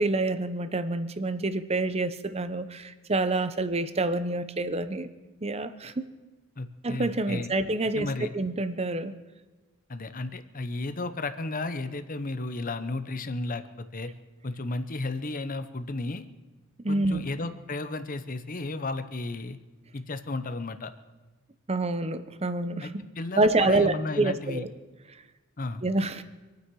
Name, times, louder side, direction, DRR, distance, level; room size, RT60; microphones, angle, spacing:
voice 1, 0.0-5.1 5.4-6.1 6.8-8.1 8.3-9.1 16.8-17.2 21.7-23.0 23.4-24.7 25.8-26.2, right 2 dB, 30° right, 11 dB, 0.8 m, -27 dB
voice 2, 6.6-7.5 7.9-8.3 9.9-14.1 14.4-16.3 16.9-19.6 19.9-20.9 22.8-22.9 23.2-24.6 25.6-25.8, left 2 dB, 40° left, 10 dB, 0.8 m, -33 dB
26.5 x 9.3 x 4.8 m, 1.2 s
head